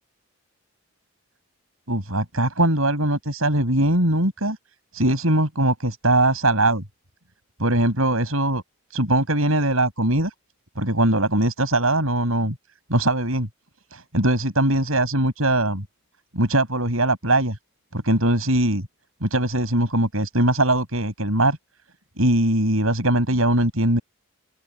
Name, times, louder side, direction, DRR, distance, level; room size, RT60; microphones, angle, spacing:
voice 1, 1.9-4.6 4.9-6.8 7.6-8.6 8.9-10.3 10.8-12.5 12.9-13.5 13.9-15.8 16.3-17.6 17.9-18.9 19.2-21.6 22.2-24.0, right 1 dB, 70° right, 6.9 m, -21 dB
head